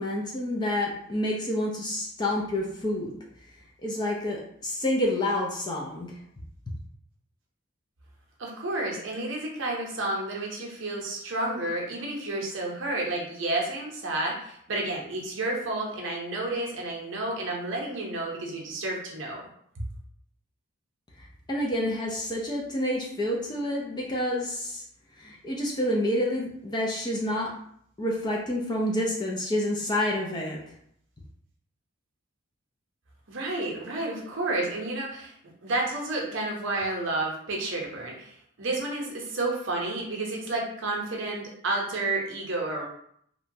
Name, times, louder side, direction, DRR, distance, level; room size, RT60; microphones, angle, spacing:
voice 1, 0.0-3.1 3.8-6.2 21.2-24.8 25.2-27.5 28.0-30.6, left 1 dB, 20° left, -2 dB, 0.3 m, -28 dB
voice 2, 8.4-19.4 19.8-19.9 33.3-35.3 35.6-42.9, right 2 dB, 60° right, -2 dB, 0.7 m, -31 dB
2.9 x 2.2 x 2.6 m, 0.67 s
head